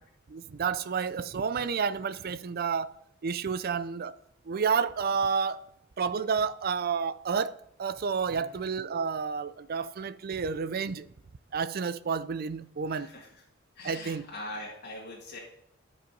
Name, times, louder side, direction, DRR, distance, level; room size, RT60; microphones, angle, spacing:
voice 1, 0.3-2.9 3.2-4.2 4.5-5.6 6.0-11.1 11.5-13.1 13.8-14.2, right 6 dB, 45° right, 0.4 m, -30 dB
voice 2, 12.9-13.4 13.8-15.4, left 2 dB, 50° left, 1.9 m, -42 dB
11.5 x 5.2 x 5.3 m
head